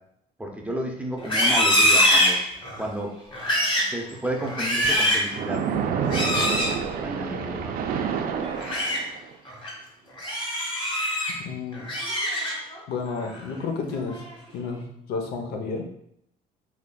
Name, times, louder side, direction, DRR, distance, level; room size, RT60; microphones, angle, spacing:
voice 1, 0.4-2.4 2.8-3.2 3.9-5.7 6.1-8.1, right 1 dB, 10° right, 0 dB, 0.5 m, -32 dB
Livestock farm animals working animals, 1.2-2.9 3.3-3.9 4.4-5.3 6.1-6.7 8.4-9.0 9.5-9.7 10.2-11.3 11.7-12.8 13.2-13.5 13.9-14.3, equal, 30° left, 1.0 m, -23 dB
Splash splatter, 5.3-9.3, right 7 dB, 60° right, 0.4 m, -28 dB
voice 2, 11.4-11.9 12.9-14.2 14.5-15.8, left 4 dB, 70° left, 4 dB, 0.7 m, -31 dB
3.8 x 3.2 x 2.2 m, 0.74 s
cardioid pair, 110°, 17 cm